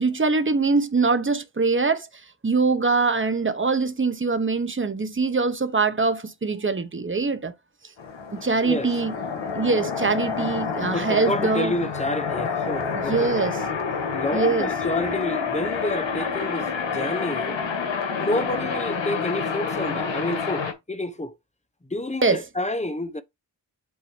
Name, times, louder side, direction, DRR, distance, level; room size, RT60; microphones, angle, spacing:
voice 1, 0.0-2.1 2.4-7.5 8.3-9.1 9.5-11.7 12.9-13.6 14.3-14.7 22.2-22.4, right 4 dB, 25° right, 1.1 m, -23 dB
sound 1, 8.0-20.7, left 5 dB, 80° left, 1.8 m, -28 dB
voice 2, 10.9-13.5 14.1-17.6 18.2-21.3 21.9-23.2, left 1 dB, 15° left, 1.0 m, -29 dB
8.0 x 2.9 x 5.1 m
wide cardioid pair, 85°, 44 cm